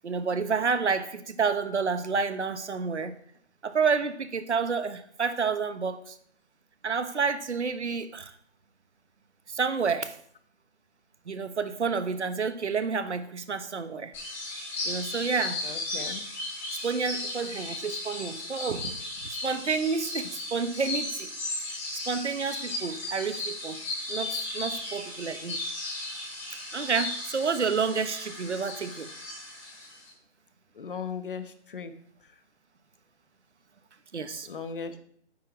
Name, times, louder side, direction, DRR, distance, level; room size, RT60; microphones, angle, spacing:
voice 1, 0.0-3.2 3.6-6.2 6.8-8.3 9.5-10.2 11.3-14.1 14.8-15.6 16.7-18.9 19.2-21.3 21.7-21.8 22.1-23.8 24.1-25.6 26.7-29.1 34.1-34.5, right 5 dB, 85° right, 11 dB, 1.3 m, -29 dB
sound 1, 14.1-30.1, left 2 dB, 5° left, 1.9 m, -36 dB
voice 2, 15.6-16.2 30.8-31.9 34.5-35.0, left 6 dB, 50° left, 10 dB, 1.2 m, -37 dB
9.5 x 8.1 x 4.7 m, 0.64 s
hypercardioid pair, 170°, 34 cm